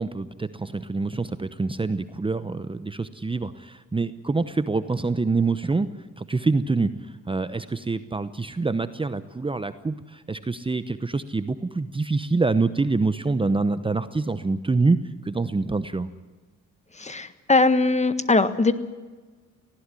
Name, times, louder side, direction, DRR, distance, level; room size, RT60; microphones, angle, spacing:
voice 1, 0.0-5.9 6.2-15.0 15.2-16.1, right 3 dB, 15° right, 12 dB, 0.9 m, -26 dB
voice 2, 17.0-18.7, left 3 dB, 25° left, 12 dB, 1.6 m, -20 dB
19.5 x 16.5 x 9.9 m, 1.3 s
cardioid pair, 90°, 30 cm